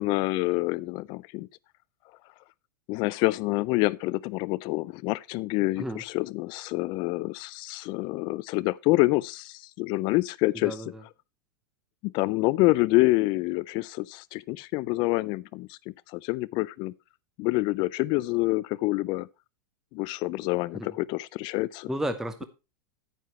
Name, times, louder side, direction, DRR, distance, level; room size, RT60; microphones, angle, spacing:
voice 1, 0.0-1.5 2.9-10.8 12.0-15.8 16.1-16.9 17.4-19.3 19.9-21.9, left 21 dB, 45° left, 0.4 m, -27 dB
voice 2, 10.5-11.0 20.7-20.9 21.9-22.4, right 1 dB, 5° right, 0.8 m, -33 dB
9.4 x 9.3 x 3.1 m
hypercardioid pair, 115°, 11 cm